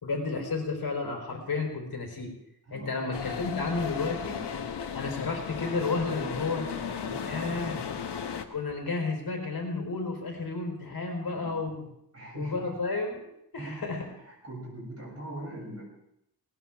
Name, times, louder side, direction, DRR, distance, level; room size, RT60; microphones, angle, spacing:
voice 1, 0.0-2.3 2.7-4.4 4.9-6.7 7.2-7.8 8.5-11.9 12.3-14.0, left 3 dB, 60° left, 1 dB, 4.3 m, -32 dB
voice 2, 2.6-3.2 4.5-4.6 6.1-8.1 11.2-11.9 12.1-12.8 13.6-15.8, right 1 dB, 35° right, -2 dB, 7.3 m, -43 dB
sound 1, 3.1-8.4, left 7 dB, 90° left, 1.4 m, -35 dB
20.5 x 19.0 x 3.6 m, 0.77 s
wide cardioid pair, 135°, 40 cm